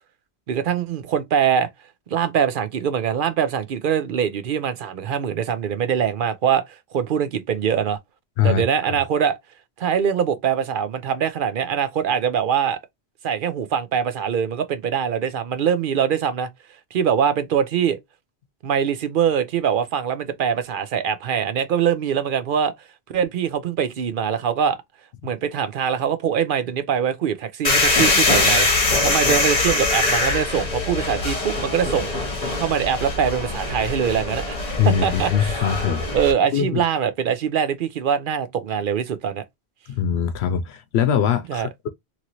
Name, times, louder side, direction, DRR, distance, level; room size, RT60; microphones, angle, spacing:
voice 1, 0.5-1.7 2.1-8.0 8.4-9.4 9.8-12.8 13.2-16.5 16.9-18.0 18.6-22.7 23.1-24.8 25.2-34.6 34.8-35.5 36.1-39.4 41.5-41.7, right 8 dB, 60° right, 0.7 m, -23 dB
sound 1, 27.6-36.3, left 3 dB, 40° left, 1.0 m, -22 dB
voice 2, 34.8-36.1 36.5-36.8 39.9-41.9, left 8 dB, 80° left, 0.8 m, -22 dB
3.0 x 2.5 x 2.9 m
omnidirectional pair, 1.1 m